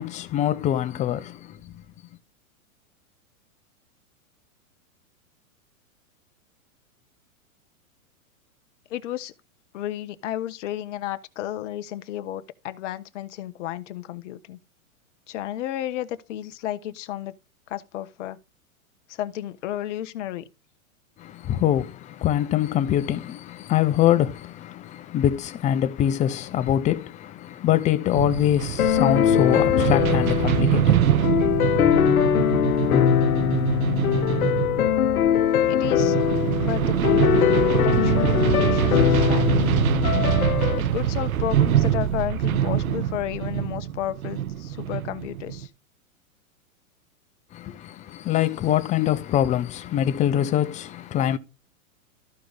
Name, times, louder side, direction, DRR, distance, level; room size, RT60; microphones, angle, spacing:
voice 1, 0.0-1.8 21.2-31.3 47.5-51.4, left 11 dB, 15° left, 0.6 m, -24 dB
voice 2, 8.9-9.3 9.7-14.6 15.3-17.4 17.7-18.4 19.1-20.4 35.7-36.2 36.6-37.3 37.7-39.8 40.7-45.7, left 12 dB, 55° left, 1.1 m, -32 dB
sound 1, 28.1-45.7, right 10 dB, 75° right, 1.3 m, -24 dB
sound 2, 28.8-40.8, left 10 dB, 85° left, 1.0 m, -22 dB
14.0 x 4.7 x 4.0 m
hypercardioid pair, 135°, 42 cm